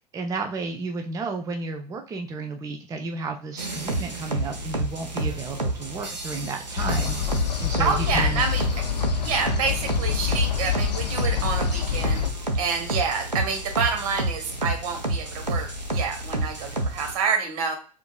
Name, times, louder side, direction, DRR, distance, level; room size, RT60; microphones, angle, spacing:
voice 1, 0.1-7.2 7.6-8.4, right 3 dB, 15° right, 5 dB, 0.4 m, -32 dB
sound 1, 3.6-17.1, right 1 dB, 90° right, 0.6 m, -29 dB
sound 2, 6.8-12.3, left 8 dB, 80° left, 0.5 m, -26 dB
voice 2, 7.8-8.6 9.2-12.2 12.6-17.7, right 5 dB, 60° right, 4 dB, 1.1 m, -28 dB
4.4 x 2.5 x 2.2 m, 0.38 s
figure-of-eight pair, 80°, 21 cm